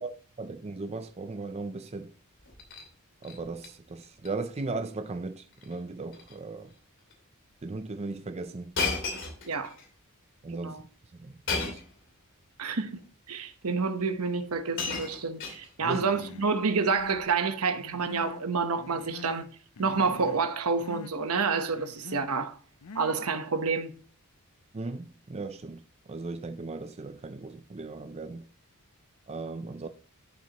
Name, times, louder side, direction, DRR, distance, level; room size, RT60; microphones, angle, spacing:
voice 1, 0.0-2.1 3.2-6.7 7.6-8.7 10.4-10.8 11.1-11.8 15.8-16.0 24.7-25.8 26.1-28.5 29.3-29.9, right 3 dB, 30° right, 0.5 m, -37 dB
Shatter, 2.4-2.9 3.2-3.7 4.0-4.3 4.6-4.7 5.5-5.8 6.1-6.4 7.1-7.2 8.7-9.9 11.5-12.0 13.0-13.1 14.1-14.2 14.5-16.0 16.9-17.2, left 4 dB, 60° left, 2.6 m, -34 dB
voice 2, 12.6-12.9 13.3-19.5 19.8-22.6 22.9-23.9, right 4 dB, 75° right, 1.1 m, -28 dB
Human voice, 15.8-16.5 16.8-17.3 17.7-18.5 18.8-19.5 19.8-20.5 20.8-21.1 21.7-22.3 22.8-23.3, left 4 dB, 85° left, 0.6 m, -44 dB
11.5 x 7.3 x 3.0 m
head